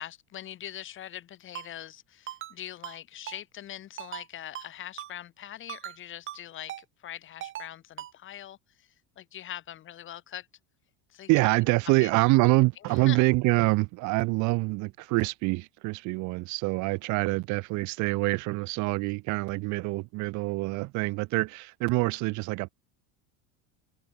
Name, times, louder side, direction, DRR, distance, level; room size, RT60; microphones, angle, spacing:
voice 1, 0.0-10.5 11.1-11.3 12.0-12.1 12.9-13.2, left 11 dB, 35° left, 4.0 m, -42 dB
Ringtone, 1.6-1.7 2.3-2.5 2.8-3.0 3.3-3.4 4.0-4.3 4.6-4.7 5.0-5.1 5.7-6.0 6.3-6.4 6.7-6.8 7.4-7.7 8.0-8.1, right 12 dB, 35° right, 2.3 m, -39 dB
voice 2, 11.3-22.7, right 25 dB, 55° right, 2.1 m, -26 dB
supercardioid pair, 145°, 35 cm